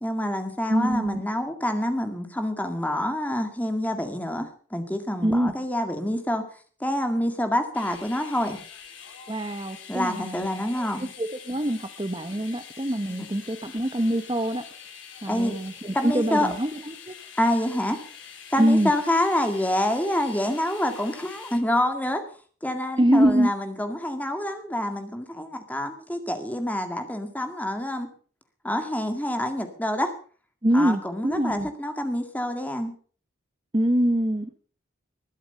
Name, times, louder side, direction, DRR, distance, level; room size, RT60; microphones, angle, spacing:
voice 1, 0.0-6.4 6.8-8.6 9.9-11.1 13.1-13.3 15.3-15.5 15.9-16.5 17.4-18.0 18.5-22.2 22.6-28.1 28.6-30.1 30.7-32.9, left 1 dB, 10° left, 6 dB, 2.0 m, -27 dB
voice 2, 0.7-1.2 5.2-5.5 9.3-14.6 15.2-17.1 18.6-18.9 23.0-23.5 30.6-31.7 33.7-34.6, right 1 dB, 25° right, 9 dB, 0.9 m, -24 dB
sound 1, 7.7-21.6, left 7 dB, 75° left, 3.3 m, -45 dB
21.0 x 11.0 x 5.4 m, 0.43 s
head